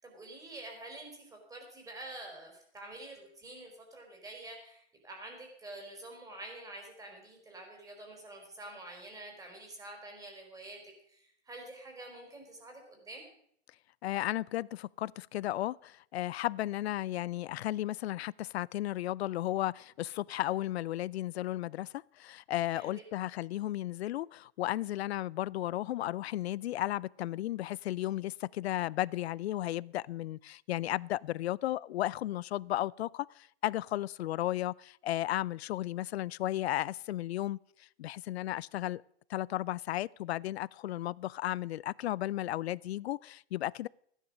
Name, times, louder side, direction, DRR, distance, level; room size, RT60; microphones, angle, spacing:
voice 1, 0.0-13.2 22.7-22.9, right 2 dB, 10° right, 4.1 m, -47 dB
voice 2, 14.0-39.0 39.3-43.9, left 14 dB, 70° left, 0.5 m, -34 dB
15.0 x 10.0 x 6.3 m
hypercardioid pair, 135°, 33 cm